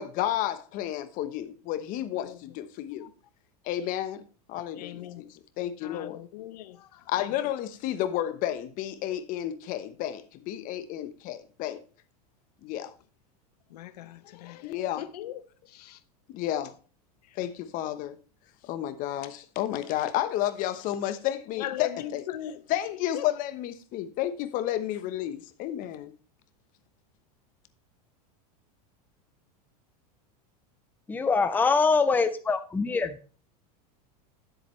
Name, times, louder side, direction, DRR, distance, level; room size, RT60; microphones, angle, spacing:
voice 1, 0.0-3.1 3.6-4.2 4.5-6.2 7.1-11.8 12.6-12.9 14.6-15.0 16.3-16.7 17.4-18.2 18.6-22.2 22.7-26.1, left 12 dB, 45° left, 1.1 m, -31 dB
voice 2, 4.8-5.2 5.8-7.3 13.7-15.4 15.7-16.0 21.6-23.3, left 12 dB, 80° left, 0.8 m, -39 dB
voice 3, 31.1-33.3, left 4 dB, 10° left, 0.6 m, -24 dB
10.0 x 7.7 x 3.2 m
supercardioid pair, 135°, 20 cm